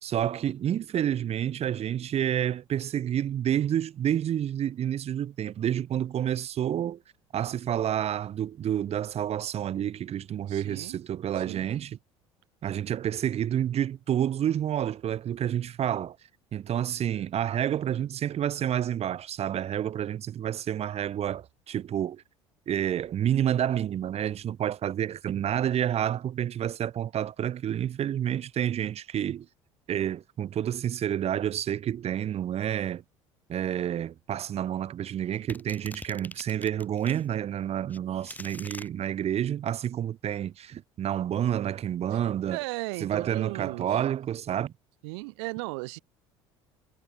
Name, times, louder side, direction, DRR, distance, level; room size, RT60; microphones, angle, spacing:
voice 1, 0.0-7.0 7.3-12.0 12.6-16.2 16.5-22.2 22.7-29.5 29.9-33.0 33.5-42.6 43.0-44.7, right 10 dB, 45° right, 2.4 m, -29 dB
voice 2, 10.5-11.0 11.3-11.7 42.1-42.2 42.5-44.0 45.0-46.0, right 31 dB, 70° right, 4.9 m, -36 dB
sound 1, 35.5-37.2 37.9-38.9, left 2 dB, 10° left, 4.0 m, -43 dB
figure-of-eight pair, 65°, 15 cm